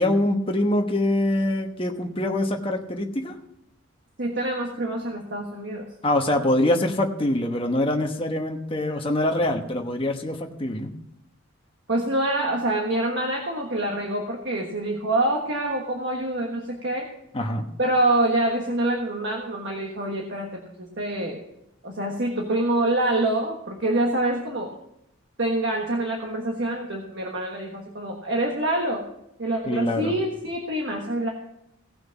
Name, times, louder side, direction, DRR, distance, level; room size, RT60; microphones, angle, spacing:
voice 1, 0.0-3.3 6.0-10.9 17.3-17.7 29.7-30.1, left 1 dB, 25° left, 3 dB, 1.1 m, -24 dB
voice 2, 4.2-5.8 11.9-17.1 17.8-21.4 21.8-24.7 25.4-29.0 29.4-31.3, right 1 dB, 55° right, 1 dB, 1.4 m, -26 dB
17.0 x 6.1 x 5.8 m, 0.80 s
head